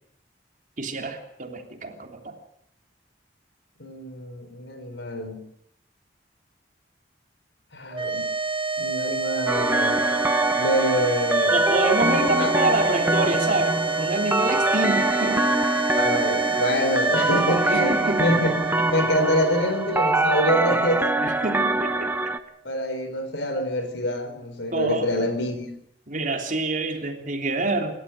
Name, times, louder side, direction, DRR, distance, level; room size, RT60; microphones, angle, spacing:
voice 1, 0.8-2.3 11.5-15.5 17.7-18.4 21.2-22.1 24.7-25.3 26.1-28.0, right 2 dB, 45° right, 4 dB, 3.2 m, -27 dB
voice 2, 3.8-5.4 7.7-8.2 8.8-10.0 10.5-11.5 12.3-12.5 15.9-18.5 18.9-21.1 22.6-25.7, equal, 75° left, 9 dB, 4.5 m, -26 dB
sound 1, 7.9-22.3, right 4 dB, 30° right, 1.6 m, -29 dB
sound 2, 9.5-22.4, right 2 dB, 10° right, 1.1 m, -24 dB
27.5 x 13.0 x 9.4 m, 0.75 s
head